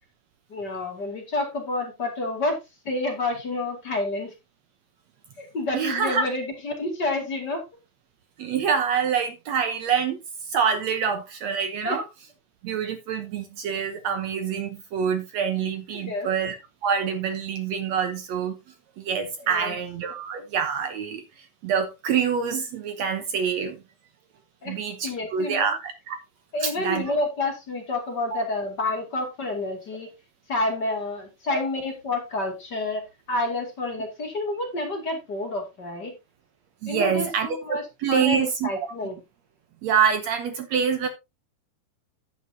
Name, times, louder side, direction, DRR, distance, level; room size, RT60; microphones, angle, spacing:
voice 1, 0.5-2.6 2.8-4.3 5.4-7.6 11.8-12.0 15.9-16.3 19.4-19.8 24.6-24.8 25.0-25.7 26.5-30.1 30.5-36.1 36.9-37.8 38.1-39.2, left 2 dB, 35° left, 2.8 m, -29 dB
voice 2, 5.7-6.3 8.4-10.2 10.5-12.0 12.6-16.6 16.8-18.6 19.0-21.2 21.6-23.8 24.7-26.2 26.6-27.0 28.3-28.4 31.5-31.6 36.8-38.7 39.8-41.1, right 7 dB, 65° right, 2.1 m, -26 dB
11.0 x 9.2 x 2.8 m
omnidirectional pair, 3.7 m